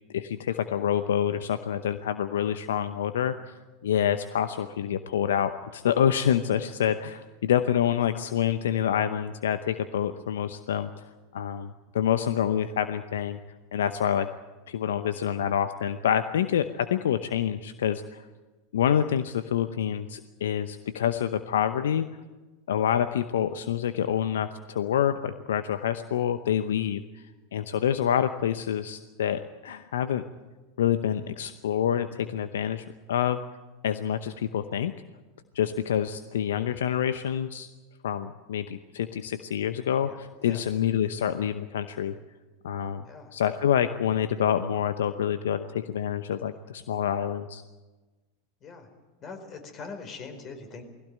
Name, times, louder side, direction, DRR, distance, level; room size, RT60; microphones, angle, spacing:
voice 1, 0.1-3.3 3.8-11.0 11.3-13.4 13.7-14.3 14.7-18.2 18.7-22.1 22.7-27.2 27.5-30.2 30.8-33.4 33.8-34.9 35.5-37.7 38.0-42.1 42.6-43.0 43.3-47.6, left 9 dB, 75° left, 11 dB, 0.8 m, -27 dB
voice 2, 40.0-40.6 43.0-43.3 48.6-48.9 49.2-50.8, left 4 dB, 35° left, 7 dB, 4.7 m, -42 dB
21.0 x 16.5 x 9.2 m, 1.2 s
hypercardioid pair, 90°, 0 cm